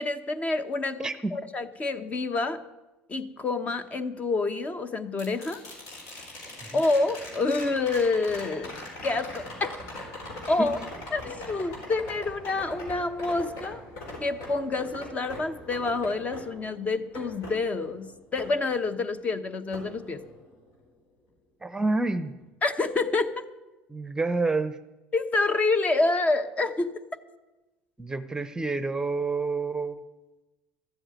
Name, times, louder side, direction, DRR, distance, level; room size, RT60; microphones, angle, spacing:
voice 1, 0.0-2.6 3.1-5.6 6.7-8.8 9.0-9.7 10.5-10.8 11.1-13.8 14.2-20.2 22.6-23.4 25.1-27.0, left 3 dB, 30° left, 11 dB, 1.0 m, -27 dB
sound 1, 5.2-19.3 19.7-20.8 23.0-23.1, left 1 dB, 70° left, 4.1 m, -42 dB
voice 2, 21.6-22.3 23.9-24.8 28.0-30.0, right 3 dB, 15° right, 13 dB, 0.8 m, -28 dB
13.0 x 7.8 x 9.0 m, 1.1 s
supercardioid pair, 95°, 5 cm